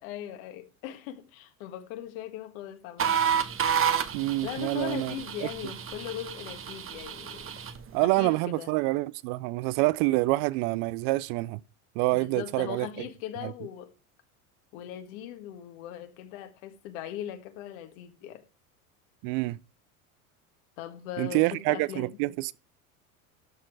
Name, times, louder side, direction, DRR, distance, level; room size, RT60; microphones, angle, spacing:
voice 1, 0.0-3.2 4.4-7.5 8.0-8.7 12.1-13.9 14.7-18.4 20.8-22.1, left 11 dB, 65° left, 1.7 m, -39 dB
sound 1, 3.0-7.8, right 8 dB, 30° right, 1.1 m, -30 dB
voice 2, 4.1-5.1 7.9-11.6 12.0-12.9 13.4-13.5 19.2-19.6 21.2-22.6, right 21 dB, 55° right, 0.5 m, -27 dB
13.0 x 4.4 x 4.8 m
hypercardioid pair, 85°, 44 cm